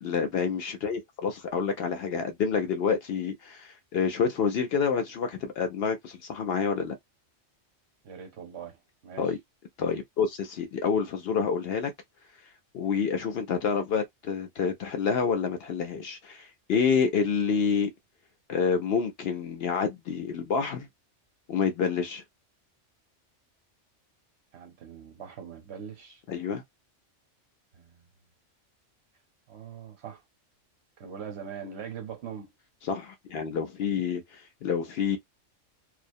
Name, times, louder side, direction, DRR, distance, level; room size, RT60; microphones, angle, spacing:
voice 1, 0.0-6.9 9.2-9.4 9.8-11.9 12.7-17.9 18.5-20.9 21.5-22.2 26.3-26.6 32.8-35.2, left 6 dB, 65° left, 0.7 m, -28 dB
voice 2, 8.0-9.3 24.5-26.2 27.7-28.0 29.5-30.2 31.0-32.5, right 7 dB, 60° right, 1.0 m, -42 dB
2.4 x 2.0 x 2.6 m
omnidirectional pair, 1.3 m